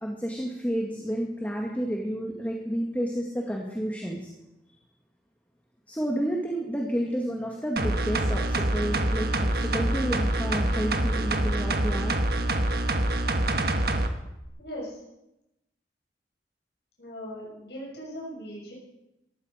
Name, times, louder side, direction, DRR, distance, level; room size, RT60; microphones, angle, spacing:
voice 1, 0.0-4.3 5.9-12.1, equal, 10° left, -1 dB, 2.0 m, -30 dB
sound 1, 7.8-14.1 14.4-14.5, right 1 dB, 60° right, 1.4 m, -26 dB
voice 2, 14.6-15.0 17.0-18.7, equal, 65° left, -4 dB, 6.5 m, -39 dB
18.5 x 15.0 x 5.1 m, 0.90 s
head